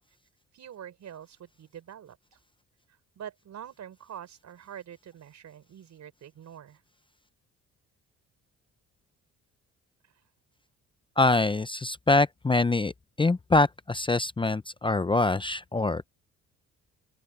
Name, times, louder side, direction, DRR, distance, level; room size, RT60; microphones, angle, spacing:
voice 1, 0.5-2.4 3.1-6.8, right 9 dB, 65° right, 5.1 m, -45 dB
voice 2, 11.2-12.9 13.2-16.0, left 2 dB, 15° left, 0.6 m, -24 dB
open air
cardioid pair, 90°, 30 cm